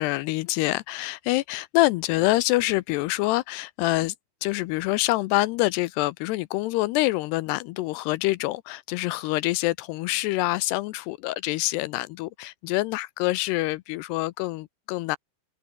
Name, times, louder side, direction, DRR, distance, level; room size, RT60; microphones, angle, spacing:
voice 1, 0.0-4.1 4.4-15.2, left 19 dB, 85° left, 2.5 m, -26 dB
omnidirectional pair, 5.0 m